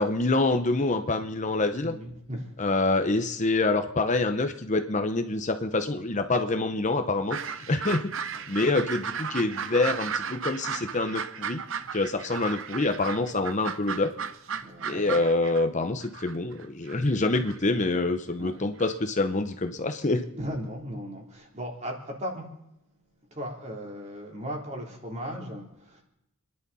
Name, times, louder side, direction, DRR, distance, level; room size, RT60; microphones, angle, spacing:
voice 1, 0.0-2.0 2.6-7.4 7.7-8.1 8.5-11.6 11.9-14.1 14.9-20.3, left 2 dB, 35° left, 7 dB, 0.8 m, -26 dB
voice 2, 1.7-2.5 8.3-8.8 14.6-15.1 18.4-18.6 20.3-22.5 23.3-26.0, equal, 30° right, -1 dB, 3.4 m, -37 dB
sound 1, 7.3-15.6 16.0-17.6 18.8-18.9, right 7 dB, 60° right, 0.7 m, -35 dB
29.5 x 11.0 x 4.2 m, 0.84 s
head